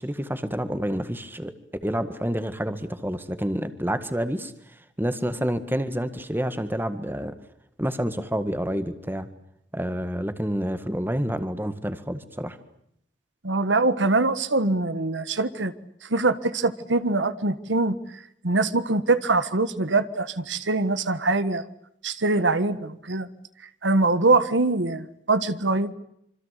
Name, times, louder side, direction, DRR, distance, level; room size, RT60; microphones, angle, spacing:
voice 1, 0.0-1.5 1.8-4.5 5.0-7.3 7.8-9.3 9.7-12.6, equal, 10° right, 10 dB, 1.8 m, -28 dB
voice 2, 13.4-15.7 16.0-18.0 18.4-21.6 22.0-23.3 23.8-25.9, right 3 dB, 85° right, 13 dB, 1.5 m, -23 dB
26.5 x 25.5 x 8.3 m, 0.74 s
head